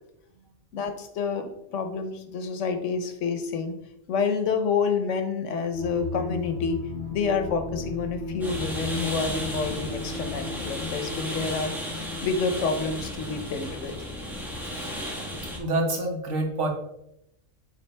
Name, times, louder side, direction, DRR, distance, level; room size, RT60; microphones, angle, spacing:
voice 1, 0.7-3.8 4.1-6.8 7.1-11.7 12.2-14.0, left 5 dB, 85° left, 7 dB, 1.1 m, -28 dB
sound 1, 5.7-12.9, left 3 dB, 60° left, 1.3 m, -35 dB
sound 2, 8.4-15.6, equal, ahead, 1.0 m, -34 dB
voice 2, 15.6-16.7, right 2 dB, 80° right, 1 dB, 1.5 m, -27 dB
8.2 x 3.4 x 3.3 m, 0.83 s
omnidirectional pair, 1.2 m